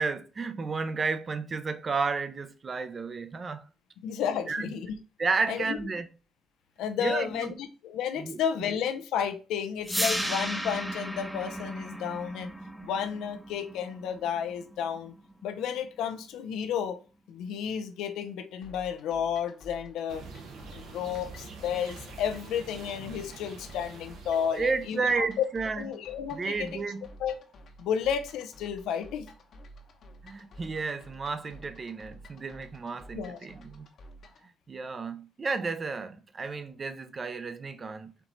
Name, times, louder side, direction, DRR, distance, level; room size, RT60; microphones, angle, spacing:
voice 1, 0.0-3.6 4.5-4.7 5.2-6.1 7.0-7.5 8.2-8.4 24.3-25.8 26.3-27.1 30.2-33.9 34.7-38.3, right 4 dB, 35° right, 0.5 m, -32 dB
voice 2, 4.0-4.9 5.5-5.8 6.8-12.5 12.8-15.1 15.4-17.0 17.3-20.2 20.7-25.5 25.8-26.8 27.2-27.3 27.8-29.3 33.1-33.4, left 8 dB, 90° left, 0.6 m, -32 dB
sound 1, 9.8-15.9, equal, 5° right, 0.7 m, -35 dB
sound 2, 18.6-34.5, right 1 dB, 60° left, 0.9 m, -51 dB
sound 3, 20.1-25.1, right 4 dB, 85° right, 1.2 m, -46 dB
4.5 x 3.0 x 3.9 m
cardioid pair, 90°, 0 cm